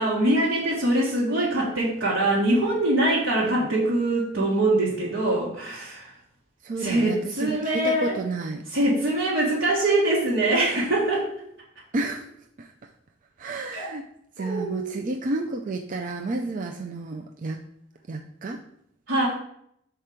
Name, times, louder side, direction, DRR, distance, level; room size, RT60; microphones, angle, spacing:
voice 1, 0.0-6.1 6.8-8.1 8.7-11.3 13.7-13.9 14.4-15.1 19.1-19.3, right 1 dB, 85° right, -6 dB, 1.5 m, -23 dB
voice 2, 6.6-8.7 11.9-12.2 12.6-12.7 13.4-14.0 14.4-17.6 18.1-18.6, right 2 dB, 45° right, 3 dB, 0.4 m, -31 dB
5.8 x 4.6 x 4.9 m, 0.73 s
head